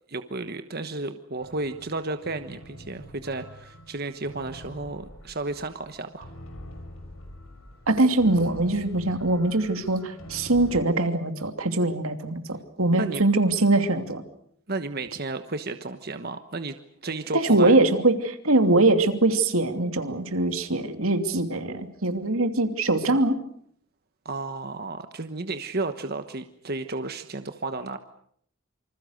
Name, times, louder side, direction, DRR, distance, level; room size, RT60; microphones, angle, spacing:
voice 1, 0.1-6.3 13.0-13.2 14.7-17.8 24.2-28.0, right 2 dB, 45° right, 9 dB, 1.2 m, -33 dB
sound 1, 1.4-10.8, equal, 75° left, 6.2 m, -45 dB
voice 2, 7.9-14.2 17.3-23.4, right 2 dB, 85° right, 7 dB, 2.8 m, -22 dB
27.5 x 26.0 x 6.6 m, 0.66 s
head